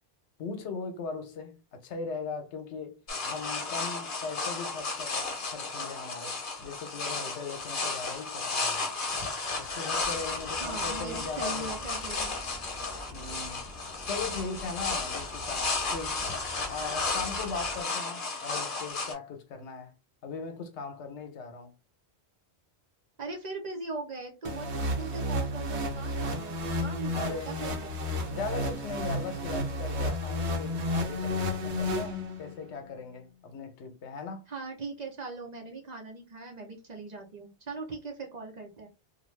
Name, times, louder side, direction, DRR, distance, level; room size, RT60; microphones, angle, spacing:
voice 1, 0.4-6.4 6.6-9.0 9.6-11.7 13.1-13.7 14.1-16.2 16.7-19.9 20.2-21.7 27.1-27.6 28.3-34.4, left 4 dB, 80° left, 1.0 m, -39 dB
sound 1, 3.1-19.1, left 3 dB, 55° left, 0.9 m, -33 dB
sound 2, 10.0-17.8, left 1 dB, 10° right, 0.8 m, -46 dB
voice 2, 10.6-12.4 23.2-28.0 34.5-38.9, right 3 dB, 45° right, 0.7 m, -40 dB
sound 3, 24.4-32.6, left 1 dB, 80° right, 1.1 m, -32 dB
2.7 x 2.3 x 3.1 m
omnidirectional pair, 1.1 m